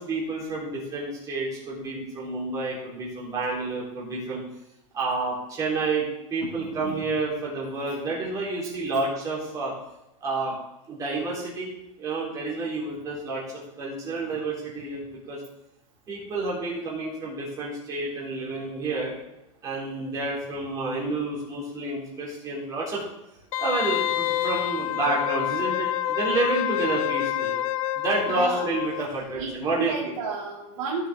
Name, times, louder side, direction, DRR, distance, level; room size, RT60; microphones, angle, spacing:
voice 1, 0.0-4.4 4.9-9.7 10.2-10.6 10.9-11.7 12.0-13.4 13.8-15.4 16.1-19.2 19.6-23.0 23.6-27.6 27.9-30.1, right 3 dB, 20° right, -5 dB, 3.6 m, -29 dB
voice 2, 6.4-7.1 7.7-8.0 14.3-14.4 28.3-28.7 29.3-29.5 29.8-31.1, right 5 dB, 70° right, -7 dB, 2.8 m, -33 dB
Wind instrument woodwind instrument, 23.5-29.1 29.4-29.5, left 13 dB, 85° left, 0.5 m, -27 dB
16.0 x 6.8 x 3.6 m, 0.90 s
supercardioid pair, 170°, 17 cm